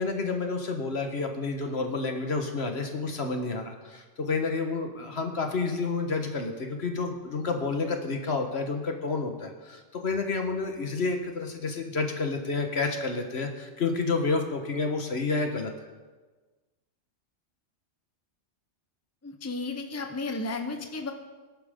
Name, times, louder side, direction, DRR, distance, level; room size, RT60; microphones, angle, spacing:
voice 1, 0.0-15.7, left 4 dB, 60° left, 4 dB, 1.7 m, -30 dB
voice 2, 19.2-21.1, left 3 dB, 15° left, 5 dB, 0.9 m, -33 dB
21.0 x 11.0 x 3.8 m, 1.3 s
omnidirectional pair, 1.2 m